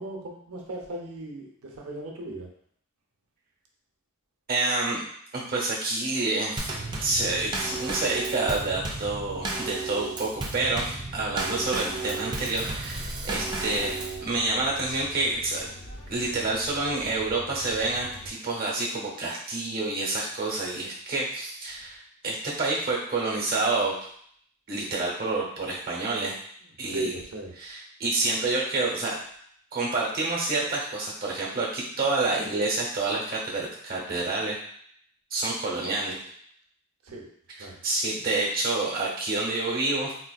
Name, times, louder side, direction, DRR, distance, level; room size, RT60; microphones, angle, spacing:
voice 1, 0.0-2.5 26.9-27.5 37.0-37.3 37.6-37.7, right 2 dB, 70° right, 0 dB, 0.7 m, -36 dB
voice 2, 4.5-5.0 5.3-6.7 7.0-13.9 14.2-15.7 16.1-24.0 24.7-26.4 26.8-27.1 27.6-29.2 29.7-34.6 35.3-36.2 37.6-40.1, right 2 dB, 40° right, -3 dB, 0.9 m, -28 dB
Drum kit / Snare drum / Bass drum, 6.6-14.2, right 3 dB, 20° right, 0.3 m, -33 dB
sound 1, 11.3-18.3, left 1 dB, 55° left, 0.7 m, -44 dB
3.8 x 2.4 x 2.3 m, 0.65 s
head